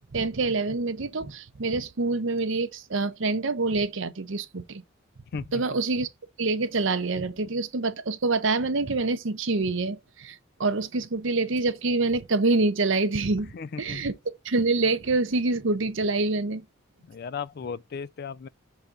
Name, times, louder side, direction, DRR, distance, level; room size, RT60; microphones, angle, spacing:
voice 1, 0.1-4.8 5.5-6.1 6.4-14.1 14.4-16.6, right 3 dB, 65° right, 0.8 m, -26 dB
voice 2, 5.3-5.8 13.5-14.1 17.1-18.5, left 6 dB, 50° left, 0.4 m, -36 dB
5.9 x 4.1 x 5.0 m
head